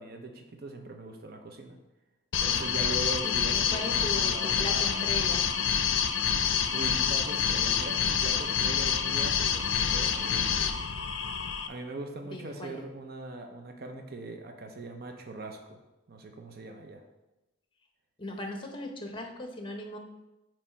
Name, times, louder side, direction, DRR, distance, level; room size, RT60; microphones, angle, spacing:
voice 1, 0.0-1.8 2.4-5.1 6.5-9.6 9.9-10.6 11.7-15.6 16.1-17.0, right 2 dB, 50° right, 4 dB, 0.7 m, -40 dB
sound 1, 2.3-11.7, left 7 dB, 65° left, 0.5 m, -27 dB
voice 2, 3.2-5.5 12.3-12.8 18.2-20.0, left 1 dB, 25° left, 4 dB, 0.8 m, -38 dB
8.5 x 3.2 x 4.4 m, 1.0 s
head